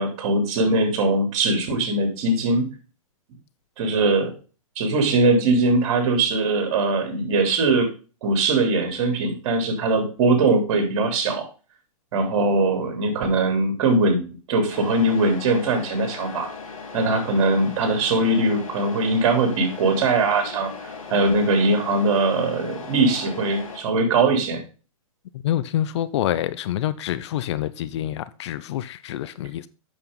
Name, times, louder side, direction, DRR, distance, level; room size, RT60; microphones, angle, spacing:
voice 1, 0.0-2.7 3.8-4.3 4.7-7.9 8.2-11.5 12.1-14.2 14.5-16.5 16.9-20.7 21.1-24.6, right 2 dB, 50° right, 3.4 m, -21 dB
Truck, 14.7-23.8, left 4 dB, 70° left, 2.8 m, -38 dB
voice 2, 25.4-29.7, left 12 dB, 50° left, 0.6 m, -26 dB
8.2 x 6.5 x 3.9 m
figure-of-eight pair, 110°, 18 cm